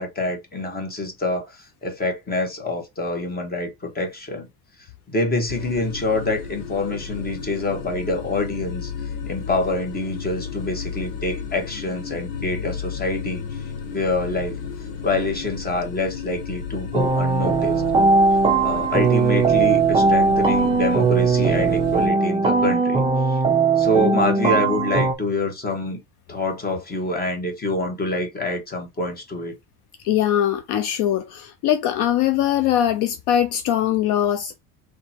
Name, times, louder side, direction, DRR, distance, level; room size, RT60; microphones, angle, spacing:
voice 1, 0.0-4.5 5.1-8.9 9.3-13.6 13.9-14.6 15.0-17.8 18.6-23.4 23.8-26.0 26.3-29.5, left 2 dB, 20° left, 1.2 m, -26 dB
sound 1, 5.5-22.1, left 6 dB, 85° left, 1.2 m, -33 dB
sound 2, 16.9-25.1, right 4 dB, 15° right, 0.4 m, -19 dB
voice 2, 30.0-34.6, left 11 dB, 60° left, 0.6 m, -21 dB
3.5 x 2.9 x 4.2 m
cardioid pair, 145°, 43 cm